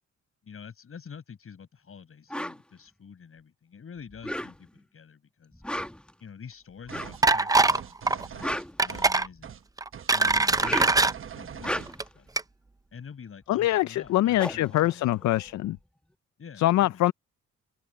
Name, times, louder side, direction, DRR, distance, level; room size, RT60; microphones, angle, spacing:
voice 1, 0.4-5.6 6.2-9.6 10.1-12.3 12.9-15.0 16.4-17.0, left 6 dB, 45° left, 7.5 m, -47 dB
sound 1, 2.3-2.6 4.1-4.8 5.5-6.1 6.9-7.2 8.2-9.4 10.4-11.1 11.5-12.2 13.7-13.8 14.0-15.7, left 1 dB, 5° left, 1.4 m, -35 dB
sound 2, 6.9-7.2 7.6-9.1 9.4-9.6 9.9-12.0, right 8 dB, 45° right, 1.1 m, -42 dB
sound 3, 7.2-7.8 8.1-8.3 8.8-9.3 9.8-11.1 11.9-12.0 12.4-12.5, right 3 dB, 10° right, 0.6 m, -22 dB
voice 2, 13.5-15.8 16.6-17.1, left 15 dB, 70° left, 0.5 m, -24 dB
open air
cardioid pair, 90°, 30 cm